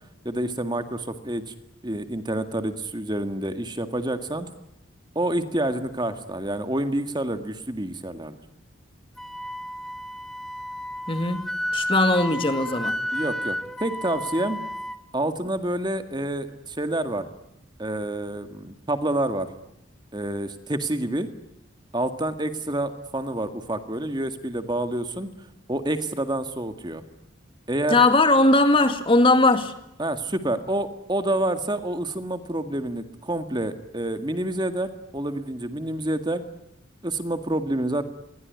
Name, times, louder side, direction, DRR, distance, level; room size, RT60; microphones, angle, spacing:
voice 1, 0.3-1.5 1.8-4.5 5.2-8.4 13.1-14.6 15.1-17.3 17.8-19.5 20.1-21.3 21.9-25.3 25.7-27.0 27.7-28.0 30.0-36.4 37.0-38.0, right 1 dB, 20° right, 8 dB, 1.9 m, -28 dB
Wind instrument woodwind instrument, 9.2-15.0, equal, ahead, 1.4 m, -31 dB
voice 2, 11.1-11.4 11.7-13.0 27.9-29.7, left 2 dB, 25° left, 8 dB, 2.2 m, -19 dB
27.0 x 22.5 x 9.6 m, 0.82 s
head